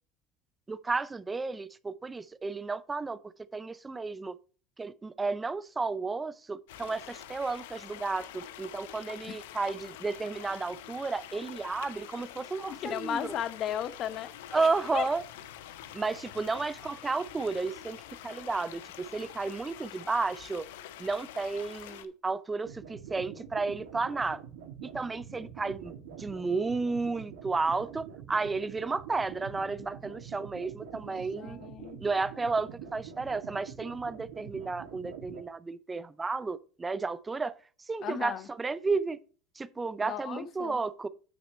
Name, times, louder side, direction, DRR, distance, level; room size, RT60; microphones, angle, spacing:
voice 1, 0.7-3.2 3.5-4.4 4.8-13.4 14.5-15.2 15.9-18.8 19.1-20.7 21.0-24.4 24.8-25.9 26.2-31.6 32.0-37.5 37.9-39.2 39.6-41.1, right 3 dB, 15° right, 0.5 m, -32 dB
sound 1, 6.7-22.0, left 12 dB, 85° left, 0.8 m, -46 dB
voice 2, 12.7-15.1 31.1-32.0 38.0-38.5 40.0-40.8, left 10 dB, 45° left, 0.8 m, -36 dB
sound 2, 22.6-35.4, right 8 dB, 85° right, 2.0 m, -46 dB
8.9 x 6.1 x 4.3 m
supercardioid pair, 110°, 0 cm